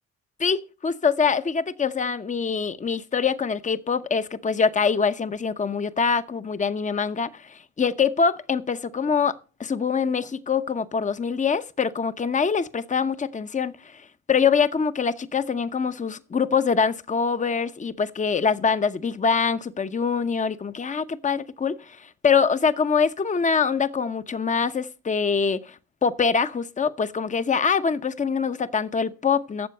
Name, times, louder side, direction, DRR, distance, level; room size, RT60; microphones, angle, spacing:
voice 1, 0.4-9.3 9.6-13.7 14.3-22.0 22.2-25.7 26.0-29.7, left 5 dB, 25° left, 0.8 m, -24 dB
12.5 x 7.4 x 6.6 m
cardioid pair, 90°, 30 cm